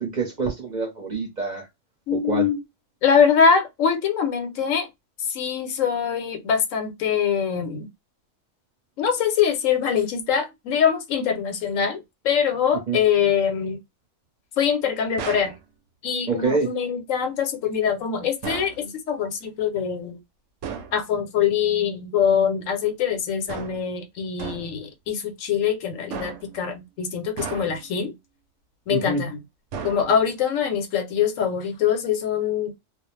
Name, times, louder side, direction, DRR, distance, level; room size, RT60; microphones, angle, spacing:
voice 1, 0.0-1.7 2.1-2.5 12.9-13.0 16.3-16.7 28.9-29.2, right 4 dB, 40° right, 0.8 m, -26 dB
voice 2, 2.1-2.6 3.0-4.9 5.2-7.9 9.0-13.8 14.6-15.5 16.0-20.2 20.9-28.1 28.9-29.4 29.8-32.7, left 7 dB, 80° left, 1.1 m, -23 dB
sound 1, 15.2-15.6 18.4-18.8 20.6-21.0 23.5-23.9 24.4-24.8 26.1-26.6 27.4-28.0 29.7-30.4, right 6 dB, 70° right, 0.8 m, -35 dB
2.4 x 2.0 x 3.0 m
omnidirectional pair, 1.3 m